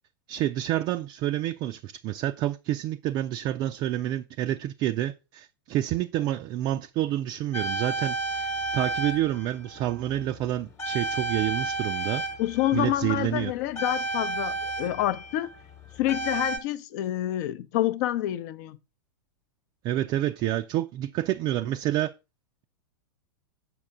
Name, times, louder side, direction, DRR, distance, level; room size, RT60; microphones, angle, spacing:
voice 1, 0.3-12.2 12.7-13.5 19.8-22.1, right 13 dB, 35° right, 0.4 m, -28 dB
sound 1, 7.5-10.5 10.8-16.6, right 2 dB, 20° left, 1.1 m, -32 dB
voice 2, 12.4-15.5 16.0-18.8, left 14 dB, 50° left, 0.6 m, -28 dB
7.6 x 5.8 x 3.6 m
figure-of-eight pair, 95°, 12 cm